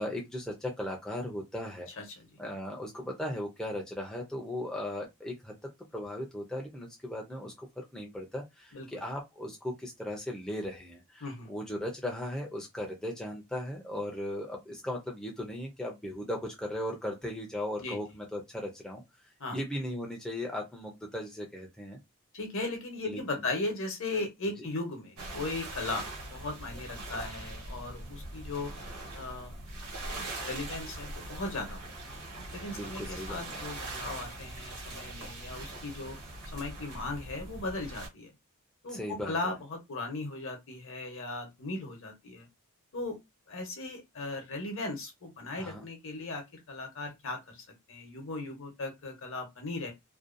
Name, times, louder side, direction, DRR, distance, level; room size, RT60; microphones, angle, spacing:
voice 1, 0.0-1.9 2.4-5.5 5.9-22.0 23.0-23.2 24.6-24.7 32.7-33.4 38.9-39.3 45.6-45.8, left 1 dB, 5° left, 0.4 m, -37 dB
voice 2, 2.0-2.3 8.7-9.0 11.2-11.5 17.8-18.0 19.4-19.6 22.3-28.7 29.1-29.6 30.4-31.9 32.5-36.2 36.5-38.3 38.8-42.5 42.9-43.2 43.5-49.9, left 2 dB, 60° left, 0.8 m, -37 dB
sound 1, 25.2-38.1, right 2 dB, 75° right, 1.2 m, -42 dB
2.6 x 2.2 x 2.5 m
head